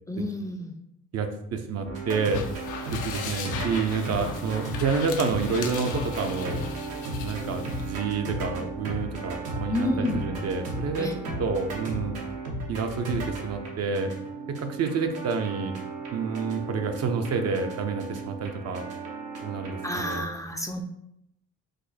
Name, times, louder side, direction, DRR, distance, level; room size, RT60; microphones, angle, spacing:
voice 1, 0.1-0.7 9.7-10.2 11.0-11.1 19.8-20.8, left 1 dB, 10° left, 3 dB, 0.4 m, -29 dB
voice 2, 1.1-2.5 2.9-6.6 7.2-11.1 11.4-12.2 12.7-14.1 14.5-15.8 16.1-18.8 19.4-19.8 20.1-20.3, right 5 dB, 55° right, 6 dB, 0.6 m, -29 dB
sound 1, 1.8-20.2, right 2 dB, 85° right, 1.0 m, -35 dB
sound 2, 2.1-7.9, left 6 dB, 85° left, 0.7 m, -38 dB
5.1 x 2.1 x 4.0 m, 0.79 s
cardioid pair, 90°, 30 cm